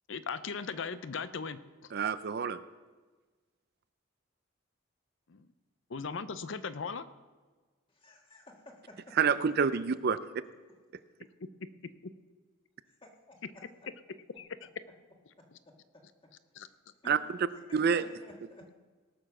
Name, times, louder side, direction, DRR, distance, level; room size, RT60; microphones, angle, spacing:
voice 1, 0.1-1.9 5.3-5.5 5.9-7.0 14.4-14.7 16.5-16.7, left 5 dB, 65° left, 14 dB, 0.6 m, -38 dB
voice 2, 1.9-2.6 9.1-10.2 17.0-17.5 17.7-18.0, right 6 dB, 50° right, 14 dB, 0.4 m, -28 dB
voice 3, 7.9-9.2 13.0-13.6 17.0-17.1 17.7-18.7, left 1 dB, 25° left, 1 dB, 1.8 m, -53 dB
18.0 x 6.9 x 6.0 m, 1.3 s
head